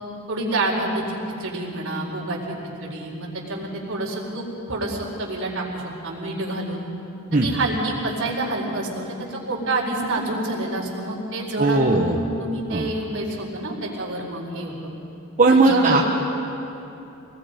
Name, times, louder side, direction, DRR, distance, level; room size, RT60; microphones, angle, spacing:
voice 1, 0.3-2.4 2.8-6.9 7.4-14.7 15.5-16.0, right 2 dB, 60° right, -3 dB, 4.4 m, -28 dB
voice 2, 11.6-12.2 12.7-12.9 15.4-16.0, right 3 dB, 35° right, -2 dB, 1.2 m, -18 dB
26.5 x 20.0 x 5.2 m, 2.9 s
head